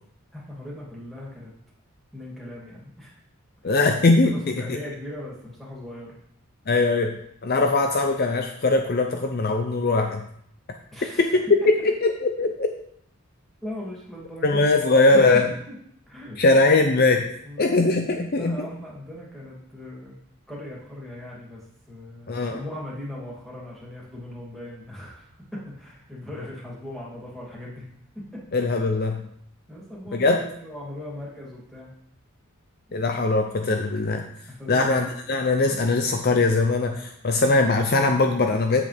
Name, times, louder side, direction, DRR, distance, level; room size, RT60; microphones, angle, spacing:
voice 1, 0.3-1.5 2.1-3.1 3.6-3.7 4.3-6.1 10.9-11.7 13.6-15.4 15.7-15.8 16.1-16.4 17.4-17.7 18.4-20.1 20.5-27.9 28.1-28.4 29.7-31.9 34.6-34.9, left 1 dB, ahead, -5 dB, 2.9 m, -38 dB
voice 2, 3.6-4.8 6.7-10.2 11.2-11.7 12.0-12.7 14.4-15.5 16.4-17.3 17.6-18.7 22.3-22.6 28.5-29.3 30.1-30.4 32.9-34.3 34.7-38.8, left 3 dB, 45° left, 4 dB, 0.6 m, -21 dB
8.8 x 7.9 x 3.5 m, 0.68 s
head